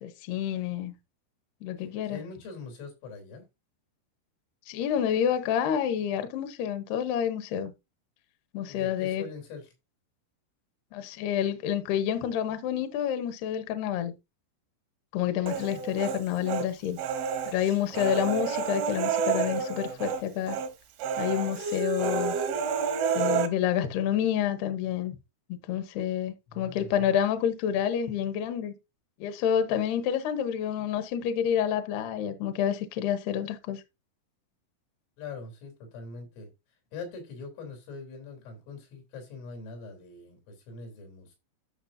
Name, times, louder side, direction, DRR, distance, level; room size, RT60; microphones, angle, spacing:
voice 1, 0.0-0.9 1.6-2.2 4.7-7.7 8.5-9.2 10.9-14.1 15.1-17.0 17.5-20.6 21.2-22.4 23.1-25.2 25.5-28.7 29.2-33.8, left 9 dB, 70° left, 2.7 m, -28 dB
voice 2, 2.1-3.4 8.7-9.7 17.9-18.0 26.5-27.1 35.2-36.5 36.9-41.4, left 4 dB, 85° left, 6.1 m, -43 dB
Human voice, 15.5-16.7 17.0-20.2 20.5-20.7 21.0-23.5, right 7 dB, 80° right, 3.7 m, -29 dB
13.5 x 6.3 x 2.6 m
omnidirectional pair, 5.6 m